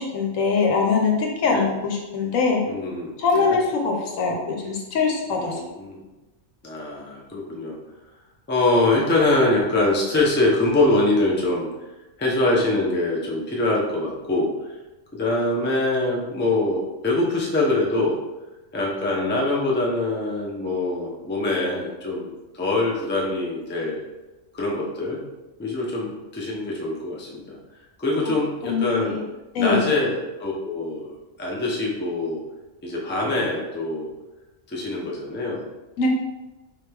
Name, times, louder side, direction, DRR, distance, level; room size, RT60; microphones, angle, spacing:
voice 1, 0.0-2.6 3.2-5.6 28.7-29.2 29.5-29.9 36.0-36.1, left 4 dB, 80° left, 0 dB, 1.1 m, -22 dB
voice 2, 2.7-3.6 5.3-6.0 6.6-7.8 8.5-11.7 12.2-14.7 15.1-18.2 18.7-24.0 24.5-25.2 25.6-27.6 28.0-29.2 29.6-31.1 31.4-32.4 32.8-34.1 34.7-35.6, left 2 dB, 15° left, -3 dB, 0.4 m, -24 dB
3.8 x 3.3 x 3.4 m, 1.1 s
omnidirectional pair, 1.4 m